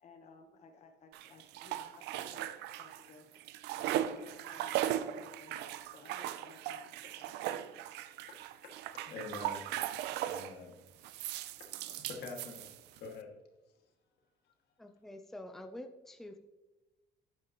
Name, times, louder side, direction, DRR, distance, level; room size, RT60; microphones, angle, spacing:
voice 1, 0.0-2.5 2.8-3.3 3.8-7.7, left 4 dB, 45° left, 4 dB, 1.0 m, -57 dB
rinse floorcloth, 1.1-3.1 3.4-10.6 11.0-13.1, right 12 dB, 85° right, 0.6 m, -38 dB
voice 2, 8.3-9.9 10.3-11.3 11.6-13.3, left 4 dB, 75° left, 2 dB, 2.2 m, -48 dB
voice 3, 14.8-16.4, left 1 dB, ahead, 7 dB, 0.6 m, -47 dB
11.5 x 8.8 x 3.0 m, 1.1 s
cardioid pair, 110°, 17 cm